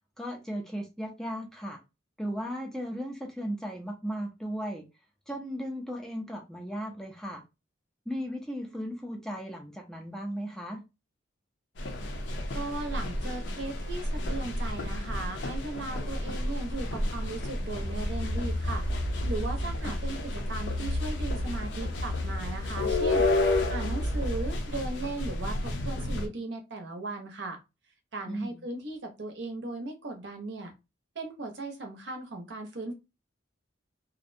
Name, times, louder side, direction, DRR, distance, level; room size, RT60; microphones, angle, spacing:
voice 1, 0.2-1.8 2.2-4.9 5.3-7.4 8.1-10.8 19.8-20.0 28.3-28.6, equal, 5° left, 2 dB, 0.3 m, -36 dB
sound 1, 11.8-26.3, left 2 dB, 65° left, 0.5 m, -32 dB
voice 2, 12.5-18.8 19.3-23.3 23.7-27.6 28.1-30.7 31.2-32.9, right 2 dB, 65° right, 4 dB, 0.6 m, -37 dB
sound 2, 17.7-24.5, left 1 dB, 90° left, 1.0 m, -33 dB
2.5 x 2.0 x 2.5 m, 0.26 s
head